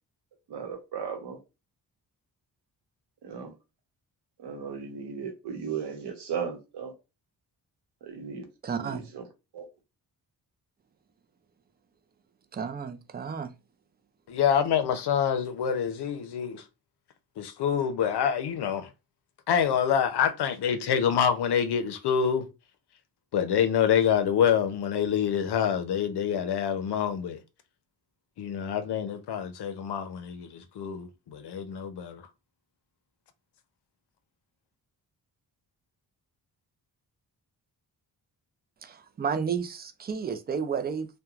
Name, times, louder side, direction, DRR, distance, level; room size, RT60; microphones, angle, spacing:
voice 1, 0.5-1.4 3.2-3.5 4.4-6.9 8.0-8.4 8.7-9.2 9.5-9.7, right 6 dB, 90° right, 0.9 m, -36 dB
voice 2, 8.6-9.1 12.5-13.5 38.8-41.1, right 6 dB, 25° right, 0.3 m, -32 dB
voice 3, 14.3-16.6 17.4-18.9 19.5-22.5 23.3-27.4 28.4-32.2, left 8 dB, 75° left, 0.6 m, -26 dB
3.0 x 2.2 x 2.3 m
wide cardioid pair, 105°, 40 cm